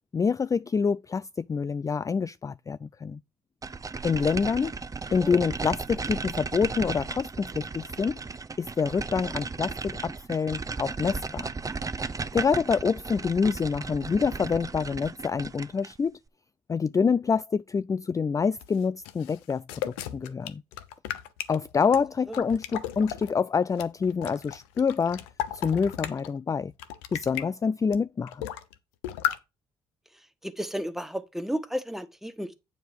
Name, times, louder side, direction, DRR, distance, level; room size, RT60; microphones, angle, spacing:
voice 1, 0.1-3.2 4.0-4.7 5.1-8.2 8.6-11.5 12.3-16.2 16.7-20.6 21.5-25.2 25.5-26.7 27.1-28.5, left 5 dB, 25° left, 0.3 m, -27 dB
sound 1, 3.6-16.0, right 4 dB, 25° right, 0.7 m, -35 dB
sound 2, 18.6-23.3 23.7-26.3 26.7-27.4 27.9-28.0 28.3-28.8 29.0-29.4, left 11 dB, 90° left, 0.8 m, -35 dB
voice 2, 30.4-32.5, equal, 5° right, 1.5 m, -33 dB
9.1 x 5.1 x 4.6 m
hypercardioid pair, 50°, 13 cm